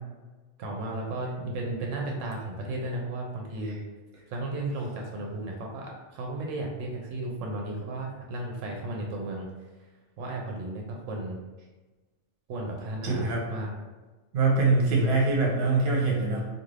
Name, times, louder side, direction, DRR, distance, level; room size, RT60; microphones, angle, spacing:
voice 1, 0.6-3.8 4.3-9.5 10.2-11.4 12.5-13.7, right 2 dB, 85° right, 0 dB, 0.9 m, -34 dB
voice 2, 13.0-13.5 14.3-16.5, right 3 dB, 60° right, -2 dB, 0.9 m, -24 dB
2.5 x 2.3 x 3.1 m, 1.2 s
omnidirectional pair, 1.3 m